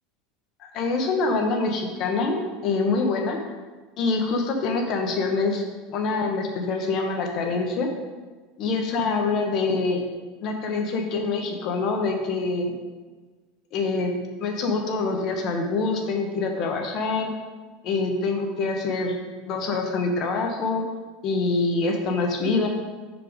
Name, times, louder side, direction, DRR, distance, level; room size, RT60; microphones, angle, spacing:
voice 1, 0.6-3.4 4.0-5.6 5.9-7.9 8.6-10.0 10.4-12.7 13.7-14.1 14.4-17.3 17.8-19.2 19.4-20.8 21.2-22.7, left 3 dB, 45° left, 3 dB, 1.2 m, -25 dB
5.6 x 5.0 x 5.1 m, 1.3 s
supercardioid pair, 140°, 0 cm